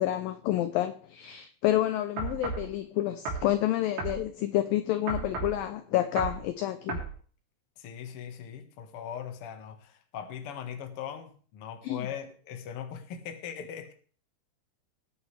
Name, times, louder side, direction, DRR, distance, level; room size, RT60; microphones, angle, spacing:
voice 1, 0.0-7.0 11.8-12.1, left 13 dB, 80° left, 2.1 m, -29 dB
sound 1, 2.2-2.7 3.3-3.5 4.0-4.2 5.1-5.6 6.2-6.4 6.9-7.1, right 4 dB, 85° right, 5.2 m, -33 dB
voice 2, 7.8-13.9, left 8 dB, 55° left, 1.6 m, -40 dB
20.5 x 9.4 x 3.3 m
omnidirectional pair, 4.8 m